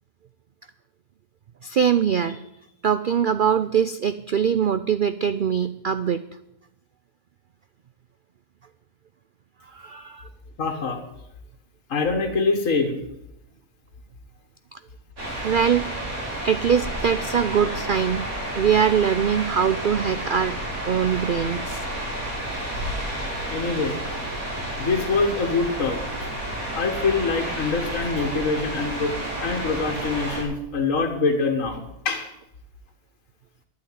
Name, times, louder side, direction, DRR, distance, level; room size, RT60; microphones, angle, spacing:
voice 1, 1.6-2.4 2.8-6.2 9.7-10.3 14.7-14.8 15.4-15.8 16.4-18.2 18.5-20.6 20.9-21.8, right 8 dB, 85° right, 12 dB, 0.4 m, -22 dB
voice 2, 10.6-11.0 11.9-13.0 23.5-24.2 24.8-26.3 26.8-29.1 29.4-32.3, left 4 dB, 60° left, 2 dB, 2.0 m, -25 dB
sound 1, 15.2-30.4, right 1 dB, 65° right, 4.8 m, -31 dB
11.0 x 9.4 x 9.4 m, 0.83 s
omnidirectional pair, 1.6 m